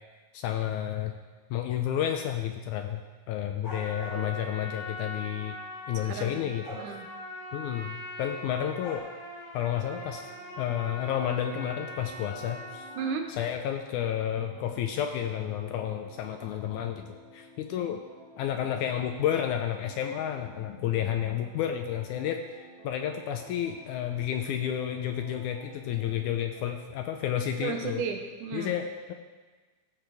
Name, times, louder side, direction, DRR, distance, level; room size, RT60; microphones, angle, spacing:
voice 1, 0.3-1.1 1.5-5.6 5.9-6.7 7.5-9.0 9.5-10.3 10.6-12.9 13.3-18.0 18.4-28.0 28.5-29.1, left 10 dB, 80° left, 5 dB, 1.9 m, -31 dB
Trumpet, 3.6-13.1, left 1 dB, 30° left, 2.1 m, -42 dB
sound 1, 3.6-4.3 6.6-6.9 8.8-9.0, left 1 dB, 15° left, 2.4 m, -41 dB
voice 2, 6.1-6.5 6.7-7.1 13.0-13.3 27.6-28.7, right 5 dB, 75° right, 4 dB, 2.2 m, -33 dB
sound 2, 9.7-26.7, right 1 dB, 40° right, 2.1 m, -52 dB
16.0 x 7.7 x 3.4 m, 1.3 s
omnidirectional pair, 3.9 m